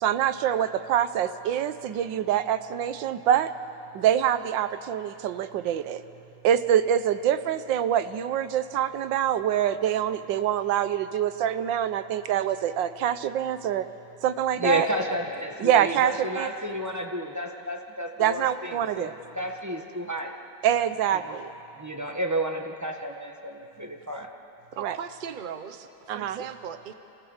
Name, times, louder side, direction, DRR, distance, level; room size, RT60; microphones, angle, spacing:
voice 1, 0.0-3.5 3.9-6.0 6.4-13.9 14.2-14.9 15.6-16.5 18.2-19.1 20.6-21.5 24.8-25.0 26.1-26.4, right 10 dB, 85° right, 12 dB, 1.5 m, -25 dB
voice 2, 14.6-20.3 21.2-21.4 21.8-24.3, equal, 10° right, 2 dB, 1.0 m, -31 dB
voice 3, 24.7-26.9, right 7 dB, 60° right, 10 dB, 0.5 m, -38 dB
28.0 x 15.0 x 7.2 m, 2.9 s
omnidirectional pair, 2.0 m